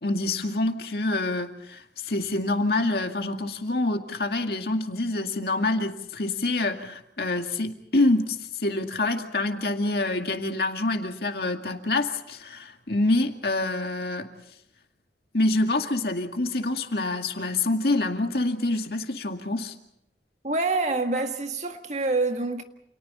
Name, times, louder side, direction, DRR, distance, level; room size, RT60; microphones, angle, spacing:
voice 1, 0.0-14.4 15.3-19.7, left 2 dB, 60° left, 2.1 m, -26 dB
voice 2, 20.4-22.6, right 3 dB, 40° right, 1.7 m, -26 dB
29.5 x 28.0 x 4.3 m
head